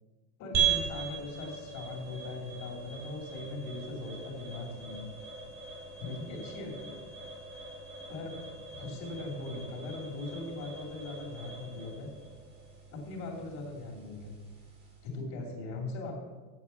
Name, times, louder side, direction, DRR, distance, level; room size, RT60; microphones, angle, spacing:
voice 1, 0.4-5.1 6.0-6.9 8.1-8.3 8.7-12.1 12.9-14.3 15.0-16.1, left 2 dB, 40° left, -1 dB, 2.7 m, -40 dB
sound 1, 0.5-15.2, right 7 dB, 20° right, 1.7 m, -39 dB
7.9 x 6.9 x 7.0 m, 1.3 s
supercardioid pair, 170°, 44 cm